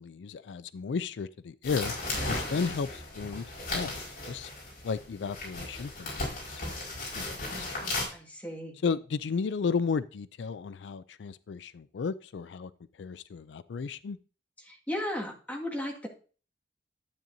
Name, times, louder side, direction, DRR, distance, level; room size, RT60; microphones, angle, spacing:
voice 1, 0.0-1.9 2.3-3.5 3.7-4.0 4.2-4.5 4.8-7.7 8.8-12.7 13.0-14.2, left 5 dB, 85° left, 16 dB, 0.4 m, -34 dB
sound 1, 1.6-8.0, left 2 dB, 55° left, 4.8 m, -36 dB
voice 2, 8.1-8.8 14.6-16.1, left 1 dB, 10° left, -2 dB, 1.9 m, -35 dB
12.0 x 8.8 x 2.7 m, 0.39 s
head